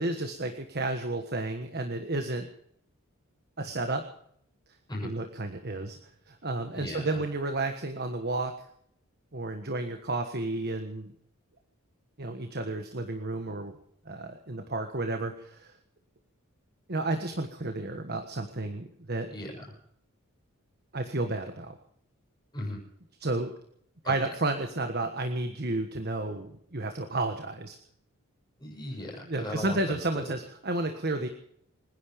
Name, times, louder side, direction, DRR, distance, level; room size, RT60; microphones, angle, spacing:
voice 1, 0.0-2.5 3.6-4.1 5.0-6.0 6.3-8.7 9.3-11.1 12.2-13.7 14.0-15.7 16.9-19.3 20.9-21.8 23.2-23.5 24.1-27.8 29.3-31.3, right 2 dB, 45° right, 6 dB, 1.4 m, -32 dB
voice 2, 6.7-7.2 19.3-19.7 22.5-22.8 24.0-24.1 28.6-30.3, left 1 dB, 20° left, -2 dB, 7.0 m, -37 dB
25.5 x 11.0 x 5.3 m, 0.69 s
head